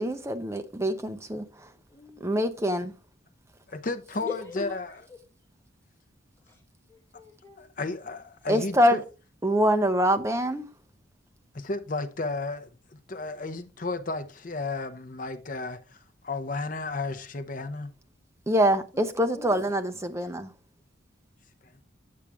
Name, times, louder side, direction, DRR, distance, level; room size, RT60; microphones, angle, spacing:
voice 1, 0.0-1.4 2.2-2.9 8.5-9.0 9.4-10.7 18.5-20.5, equal, 15° right, 0.6 m, -24 dB
voice 2, 1.9-2.4 4.2-4.8 6.5-6.6 6.9-7.7 18.9-19.0 19.3-19.6 20.2-20.3, left 5 dB, 10° left, 3.3 m, -40 dB
voice 3, 3.7-5.0 7.6-9.0 11.5-17.9, left 3 dB, 40° left, 0.7 m, -33 dB
8.5 x 6.4 x 3.5 m
head